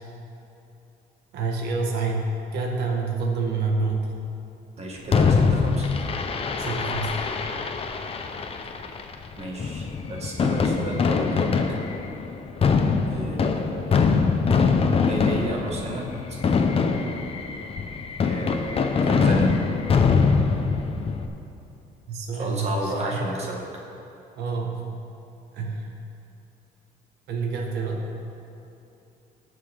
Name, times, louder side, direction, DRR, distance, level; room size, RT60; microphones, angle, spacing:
voice 1, 1.3-2.3 2.5-4.1 6.6-7.1 22.1-23.3 24.3-24.9 25.5-25.9 27.3-28.1, right 4 dB, 75° right, 0 dB, 1.7 m, -27 dB
voice 2, 4.8-5.9 9.4-11.5 13.1-14.0 15.1-16.4 18.2-19.6 22.3-23.6, right 2 dB, 40° right, -1 dB, 1.9 m, -32 dB
Fireworks, 5.1-21.3, left 5 dB, 35° left, 0.8 m, -23 dB
19.5 x 6.8 x 3.7 m, 2.9 s
cardioid pair, 110°, 17 cm